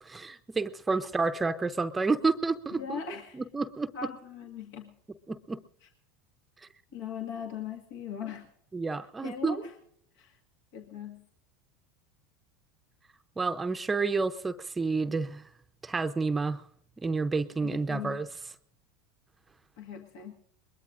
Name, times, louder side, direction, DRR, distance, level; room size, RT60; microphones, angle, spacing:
voice 1, 0.0-3.0 3.3-3.9 5.3-5.6 8.7-9.6 13.4-15.4 15.8-16.6 17.0-18.3, right 4 dB, 15° right, 9 dB, 0.7 m, -29 dB
voice 2, 2.8-3.4 3.9-4.9 5.8-5.9 6.9-8.5 9.2-9.7 10.2-10.4 10.7-11.2 17.6-18.2 19.8-20.3, left 7 dB, 70° left, 3 dB, 1.9 m, -39 dB
21.5 x 21.5 x 2.6 m, 0.68 s
hypercardioid pair, 90°, 0 cm